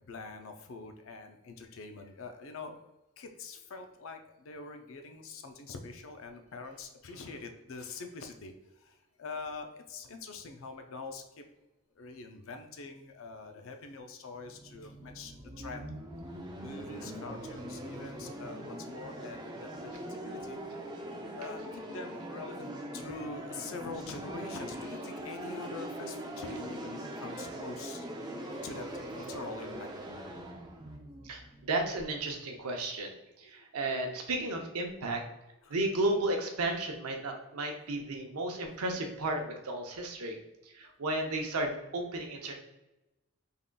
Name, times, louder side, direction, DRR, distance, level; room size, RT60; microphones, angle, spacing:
voice 1, 0.0-2.8 3.2-11.4 12.0-16.0 16.6-20.6 21.1-28.1 28.5-29.9 33.6-33.7 35.6-35.7 40.8-40.9, left 3 dB, 65° left, 6 dB, 0.4 m, -44 dB
sound 1, 14.4-32.2, right 1 dB, 20° right, 0.4 m, -42 dB
voice 2, 31.2-35.2 35.7-40.4 40.6-42.6, right 2 dB, 85° right, 3 dB, 0.6 m, -33 dB
3.7 x 3.6 x 2.2 m, 0.96 s
head